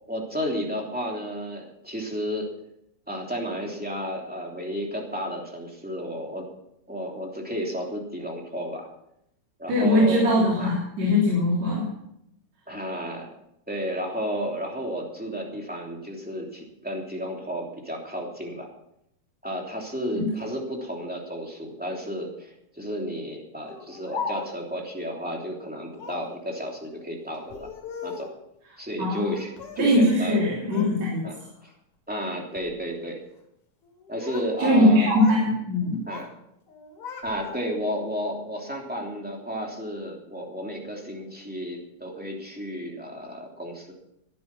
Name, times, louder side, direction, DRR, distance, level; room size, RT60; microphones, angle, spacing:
voice 1, 0.1-2.5 3.1-6.5 6.9-8.9 9.6-10.3 10.6-10.7 12.7-13.3 13.7-18.7 19.4-27.7 28.0-28.3 28.8-29.5 29.8-30.4 31.2-31.4 31.6-31.7 32.1-33.2 34.1-35.1 36.1-36.3 37.2-43.9, equal, 5° right, -1 dB, 2.6 m, -32 dB
voice 2, 9.7-11.9 20.1-20.3 29.0-29.3 29.8-31.3 34.6-36.0, left 1 dB, 60° right, -5 dB, 4.4 m, -21 dB
Speech, 23.7-24.8 25.9-26.4 27.3-28.4 29.1-29.9 30.2-30.9 31.3-31.7 32.4-32.7 33.8-34.5 34.8-35.5 35.8-36.3 36.7-37.9, left 5 dB, 65° left, 3.7 m, -38 dB
17.0 x 11.0 x 6.0 m, 0.79 s
omnidirectional pair, 3.6 m